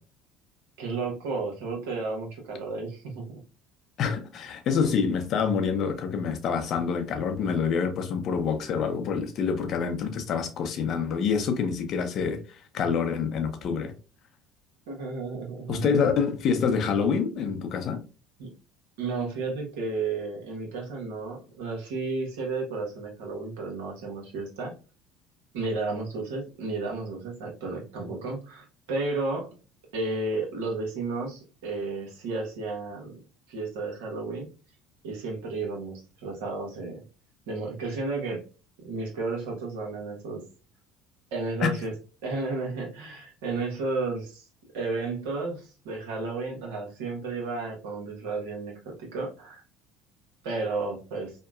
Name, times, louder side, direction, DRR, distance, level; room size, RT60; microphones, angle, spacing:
voice 1, 0.8-3.4 14.9-16.0 18.4-18.5 19.0-24.7 25.5-29.5 29.9-33.2 33.5-34.5 35.0-37.0 37.5-38.4 38.8-40.4 41.3-41.9 42.2-44.4 44.7-49.6 50.4-51.3, right 3 dB, 80° right, 1.0 m, -32 dB
voice 2, 4.0-13.9 15.7-18.0 41.6-41.7, left 6 dB, 55° left, 0.6 m, -26 dB
2.8 x 2.2 x 2.3 m
hypercardioid pair, 75°, 0 cm